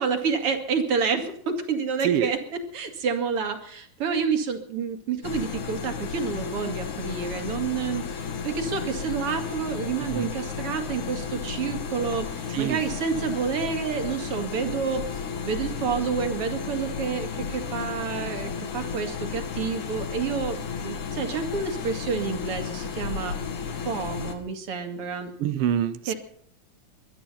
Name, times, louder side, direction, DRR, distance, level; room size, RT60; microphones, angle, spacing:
voice 1, 0.0-23.4 23.9-25.3 26.1-26.2, right 6 dB, 50° right, 2.9 m, -29 dB
sound 1, 5.2-24.4, left 6 dB, 70° left, 3.3 m, -33 dB
voice 2, 12.5-12.8 13.1-13.2 25.4-26.1, right 10 dB, 85° right, 1.3 m, -26 dB
22.0 x 11.5 x 5.6 m
omnidirectional pair, 3.6 m